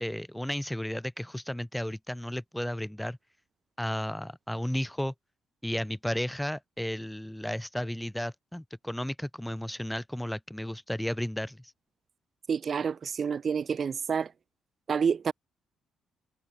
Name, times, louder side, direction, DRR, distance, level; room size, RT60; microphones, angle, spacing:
voice 1, 0.0-3.2 3.8-5.1 5.6-11.7, left 1 dB, 5° left, 1.4 m, -33 dB
voice 2, 12.5-14.3 14.9-15.3, right 6 dB, 45° right, 0.6 m, -28 dB
cardioid pair, 90°, 0 cm